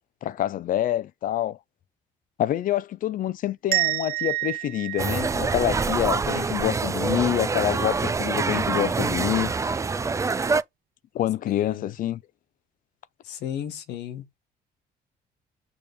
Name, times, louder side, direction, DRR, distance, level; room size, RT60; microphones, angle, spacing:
voice 1, 0.2-1.6 2.4-9.5 11.1-12.2, left 12 dB, 55° left, 0.5 m, -26 dB
sound 1, 3.7-6.5, right 19 dB, 60° right, 1.1 m, -29 dB
sound 2, 5.0-10.6, right 4 dB, 20° right, 0.5 m, -25 dB
voice 2, 11.4-12.0 13.2-14.4, left 10 dB, 80° left, 1.5 m, -34 dB
6.9 x 3.1 x 5.2 m
cardioid pair, 110°, 17 cm